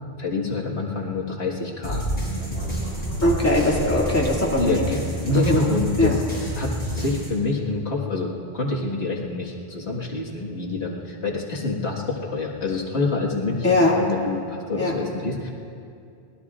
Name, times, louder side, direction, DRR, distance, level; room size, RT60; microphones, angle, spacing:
voice 1, 0.2-2.0 4.6-6.2 6.6-15.5, left 3 dB, 85° left, -3 dB, 2.0 m, -27 dB
sound 1, 1.8-7.3, right 1 dB, 40° left, 5.4 m, -28 dB
voice 2, 3.2-4.8 5.5-5.6 6.0-6.2 13.6-14.0 14.7-14.9, left 1 dB, 15° left, -4 dB, 2.3 m, -20 dB
25.5 x 20.0 x 2.5 m, 2.4 s
omnidirectional pair, 1.1 m